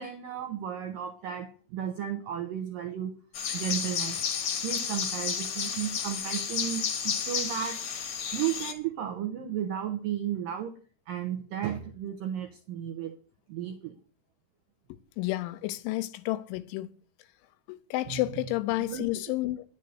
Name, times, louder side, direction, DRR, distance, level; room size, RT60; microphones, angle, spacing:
voice 1, 0.0-3.1 3.5-4.2 4.6-7.8 8.3-10.8 11.1-13.2 13.5-14.0 18.1-18.2 18.8-19.3, right 10 dB, 85° right, 2.0 m, -34 dB
sound 1, 3.3-8.7, left 7 dB, 60° left, 1.8 m, -32 dB
voice 2, 15.2-16.9 17.7-19.6, left 17 dB, 85° left, 3.2 m, -31 dB
10.5 x 7.3 x 8.0 m
omnidirectional pair, 5.3 m